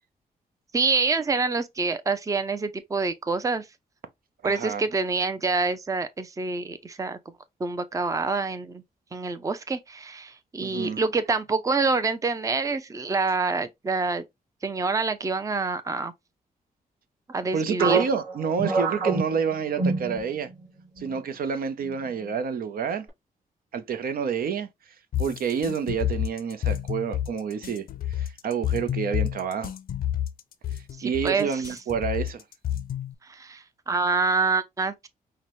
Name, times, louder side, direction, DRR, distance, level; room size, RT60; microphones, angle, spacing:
voice 1, 0.7-3.7 4.4-7.2 7.6-8.8 9.1-14.2 14.6-16.1 17.3-18.0 31.0-31.6 33.2-35.1, right 4 dB, 20° right, 0.5 m, -26 dB
voice 2, 4.4-4.8 10.6-11.0 17.5-20.5 21.0-23.1 23.7-24.7 25.2-29.7 30.7-32.4, right 6 dB, 70° right, 0.7 m, -28 dB
sound 1, 17.8-20.6 21.0-21.2 21.8-22.3, right 3 dB, 55° right, 1.9 m, -27 dB
sound 2, 25.1-33.1, left 11 dB, 70° left, 0.5 m, -29 dB
5.7 x 2.2 x 3.1 m
cardioid pair, 90°, 16 cm